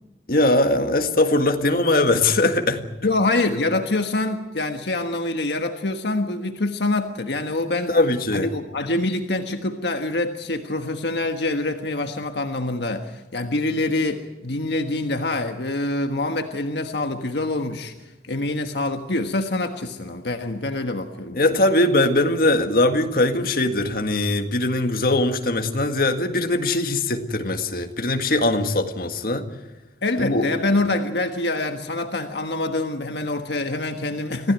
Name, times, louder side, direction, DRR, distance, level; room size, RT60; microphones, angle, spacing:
voice 1, 0.3-2.8 7.9-8.5 21.3-29.5 30.2-30.4, left 2 dB, 55° left, 5 dB, 1.8 m, -21 dB
voice 2, 3.0-7.9 8.3-17.9 18.2-21.5 30.0-34.5, left 2 dB, 75° left, 5 dB, 1.5 m, -25 dB
26.0 x 16.0 x 9.4 m, 1.1 s
head